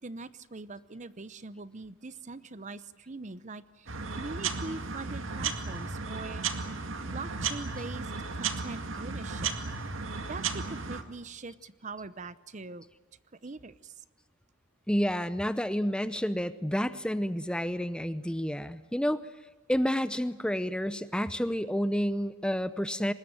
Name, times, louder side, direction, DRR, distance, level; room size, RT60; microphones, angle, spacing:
voice 1, 0.0-6.5 7.1-9.5 10.2-12.8 13.4-14.0, right 3 dB, 35° right, 16 dB, 0.8 m, -42 dB
sound 1, 3.9-11.0, right 5 dB, 75° right, 2.1 m, -34 dB
voice 2, 14.9-19.2 19.7-23.1, equal, 5° left, 13 dB, 0.7 m, -29 dB
24.5 x 20.5 x 9.1 m, 1.2 s
head